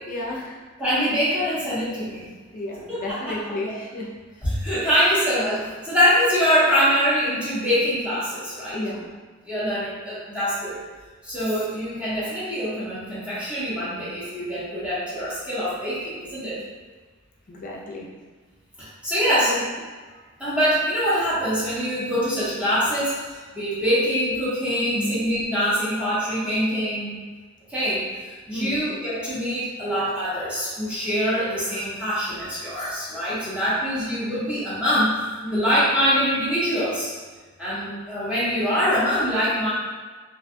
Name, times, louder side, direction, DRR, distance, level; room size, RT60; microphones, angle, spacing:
voice 1, 0.1-0.6 2.5-4.1 8.7-9.2 17.5-18.1 19.4-19.6 24.8-25.2 28.5-28.9 35.4-35.8, left 1 dB, 40° left, -3 dB, 0.5 m, -32 dB
voice 2, 0.8-2.2 2.9-3.4 3.7-3.8 4.4-8.8 9.5-10.8 11.2-16.6 18.8-19.5 20.4-23.3 23.6-27.2 27.7-35.1 35.5-37.1 37.6-39.7, equal, 5° right, -11 dB, 0.7 m, -24 dB
2.5 x 2.2 x 2.6 m, 1.4 s
head